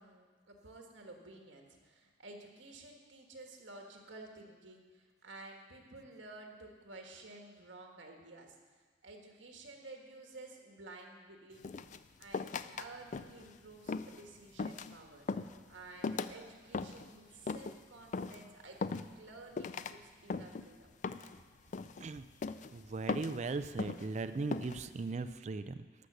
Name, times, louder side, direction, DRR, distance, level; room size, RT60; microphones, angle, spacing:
voice 1, 0.0-8.6 9.0-11.7 12.2-15.3 15.7-20.9, right 2 dB, 75° right, 2 dB, 1.6 m, -52 dB
sound 1, 11.6-12.9 13.1-13.5 13.9-14.2 14.6-15.0 15.3-15.6 16.0-16.4 16.7-17.1 17.5-17.8 18.1-18.4 18.8-19.3 19.6-19.9 20.3-20.7 21.0-21.4 21.7-22.0 22.4-22.7 23.1-23.4 23.8-24.1 24.5-24.8, left 4 dB, 40° left, 0.3 m, -38 dB
voice 2, 22.7-25.8, right 3 dB, 35° right, 11 dB, 0.4 m, -38 dB
12.0 x 6.5 x 6.6 m, 1.4 s
head